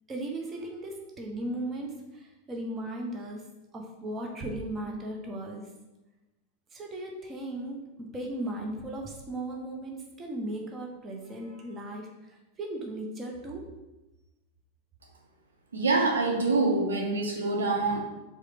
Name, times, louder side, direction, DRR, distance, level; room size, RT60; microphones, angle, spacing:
voice 1, 0.1-3.5 3.7-5.7 6.7-12.2 12.6-13.7, right 1 dB, 25° right, 0 dB, 1.1 m, -37 dB
voice 2, 15.7-18.0, right 3 dB, 70° right, 0 dB, 1.0 m, -25 dB
4.8 x 3.9 x 5.0 m, 1.0 s
figure-of-eight pair, 90°, 0 cm